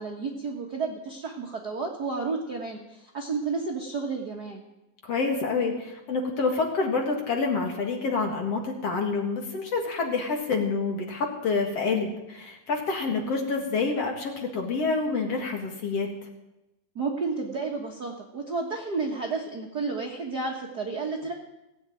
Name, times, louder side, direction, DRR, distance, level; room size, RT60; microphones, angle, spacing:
voice 1, 0.0-4.6 16.9-21.3, right 4 dB, 50° right, 0 dB, 1.2 m, -31 dB
voice 2, 5.0-16.1, left 4 dB, 50° left, 2 dB, 2.6 m, -27 dB
17.5 x 8.1 x 9.0 m, 0.96 s
omnidirectional pair, 4.0 m